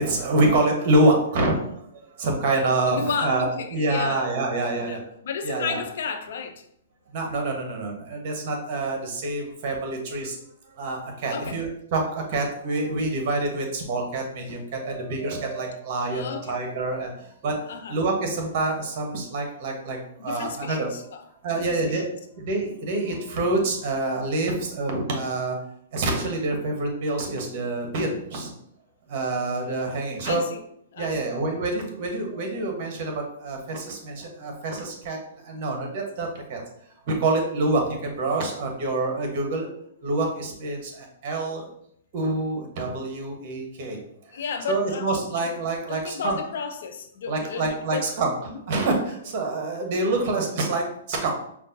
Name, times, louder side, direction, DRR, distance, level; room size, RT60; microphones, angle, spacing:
voice 1, 0.0-5.0 5.4-5.8 7.1-10.4 10.7-17.6 17.9-21.1 21.4-22.1 22.4-25.6 25.9-28.5 29.1-30.4 31.0-36.6 37.1-39.7 40.0-41.7 42.1-44.0 44.7-46.4 47.3-48.3 48.7-51.3, right 2 dB, 45° right, 2 dB, 1.2 m, -26 dB
voice 2, 2.9-4.3 4.8-5.0 5.2-6.6 11.3-11.6 16.1-16.6 17.7-18.0 20.2-21.2 21.5-22.0 30.2-30.6 30.9-31.2 44.3-45.4 45.9-48.1 48.4-48.6, left 6 dB, 65° left, 7 dB, 0.5 m, -33 dB
5.2 x 2.5 x 2.7 m, 0.70 s
hypercardioid pair, 140°, 0 cm